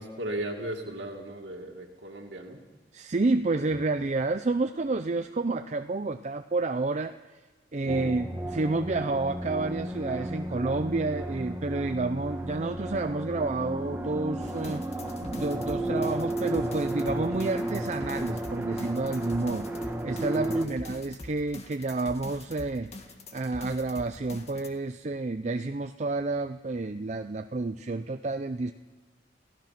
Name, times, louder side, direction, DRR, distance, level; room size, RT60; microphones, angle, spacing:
voice 1, 0.0-2.6 7.8-8.1 20.3-20.8, right 1 dB, 80° right, -1 dB, 2.3 m, -37 dB
voice 2, 2.9-7.1 7.7-14.8 15.3-22.9 23.3-28.7, right 3 dB, 40° right, 8 dB, 0.5 m, -30 dB
sound 1, 7.9-20.7, right 1 dB, 15° right, 1.3 m, -33 dB
sound 2, 14.4-24.7, left 2 dB, 40° left, 1.9 m, -44 dB
29.0 x 16.5 x 5.9 m, 1.3 s
head